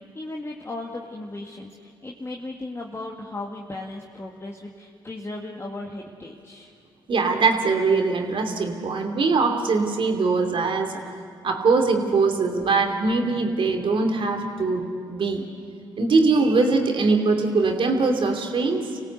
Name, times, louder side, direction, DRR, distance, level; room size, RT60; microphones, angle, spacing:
voice 1, 0.0-6.7, left 2 dB, 25° left, 0 dB, 2.1 m, -36 dB
voice 2, 7.1-11.1 11.4-15.4 16.0-18.8, right 3 dB, 55° right, 4 dB, 2.8 m, -22 dB
26.5 x 17.0 x 8.2 m, 2.4 s
hypercardioid pair, 45°, 10 cm